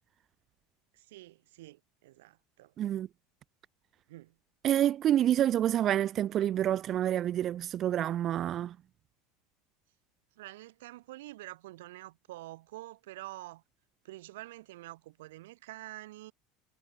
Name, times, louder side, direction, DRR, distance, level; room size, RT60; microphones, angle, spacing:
voice 1, 0.9-2.7 4.1-4.4 10.3-13.6 14.0-16.3, right 17 dB, 85° right, 3.0 m, -47 dB
voice 2, 2.8-3.1 4.6-8.8, right 11 dB, 35° right, 0.8 m, -28 dB
supercardioid pair, 135°, 0 cm